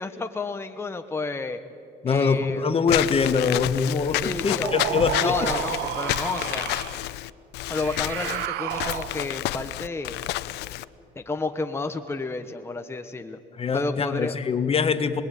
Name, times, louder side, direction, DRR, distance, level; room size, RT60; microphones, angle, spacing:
voice 1, 0.0-1.6 2.1-2.6 4.2-4.7 5.1-6.7 7.7-10.2 11.1-13.4 13.7-14.3, left 3 dB, 15° left, 6 dB, 1.3 m, -31 dB
voice 2, 2.0-5.5 13.6-15.2, left 5 dB, 35° left, 10 dB, 1.5 m, -23 dB
Walk footsteps / Squeak, 2.9-10.8, left 16 dB, 85° left, 0.7 m, -30 dB
sound 1, 4.6-7.1 7.7-9.4, right 15 dB, 85° right, 0.7 m, -32 dB
28.5 x 20.5 x 9.3 m, 2.6 s
cardioid pair, 110°, 17 cm